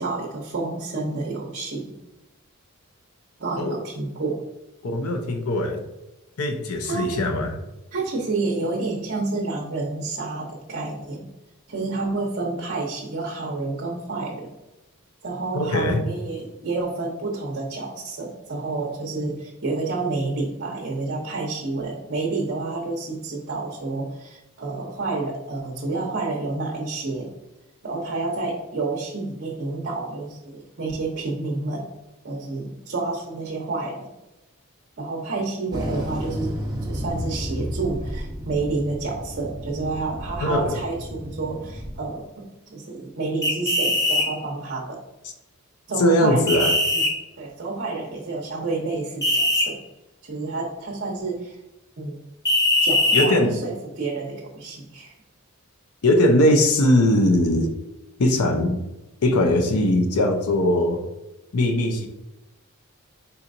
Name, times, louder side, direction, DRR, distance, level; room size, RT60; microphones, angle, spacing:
voice 1, 0.0-2.0 3.4-4.4 6.9-7.2 7.9-11.3 11.7-14.5 15.2-27.3 27.8-31.9 32.2-34.1 35.0-42.4 42.7-45.0 45.9-46.5 46.9-47.0 47.4-49.8 50.2-51.6 52.0-52.2 52.8-55.1, right 3 dB, 50° right, -2 dB, 0.7 m, -29 dB
voice 2, 4.8-5.8 6.4-7.5 15.5-16.0 40.4-40.8 46.0-46.7 53.1-53.5 56.0-57.7 58.2-58.8 59.2-61.0 61.5-62.1, left 1 dB, 90° left, 5 dB, 0.7 m, -20 dB
sound 1, 35.7-42.0, equal, 20° right, 0.8 m, -32 dB
sound 2, 43.4-44.3 46.5-47.1 49.2-49.7 52.4-53.3, left 1 dB, 15° left, 1.1 m, -20 dB
4.3 x 4.1 x 2.6 m, 1.0 s
head